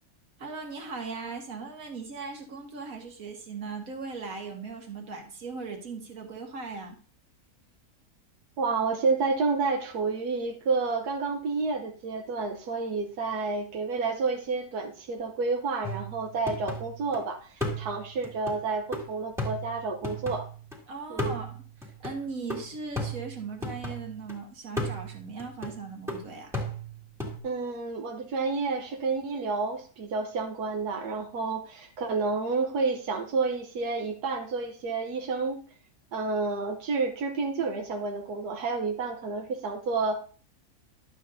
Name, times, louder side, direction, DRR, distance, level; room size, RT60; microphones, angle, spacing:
voice 1, 0.4-7.0 20.9-26.5, right 4 dB, 65° right, 2 dB, 2.0 m, -38 dB
voice 2, 8.6-20.5 21.1-21.4 27.4-35.6 36.1-40.2, right 4 dB, 90° right, 4 dB, 1.5 m, -30 dB
sound 1, 15.8-17.2 17.6-20.8 21.2-24.3 24.8-27.4, equal, ahead, 2.0 m, -36 dB
11.5 x 7.8 x 2.6 m, 0.39 s
omnidirectional pair, 1.6 m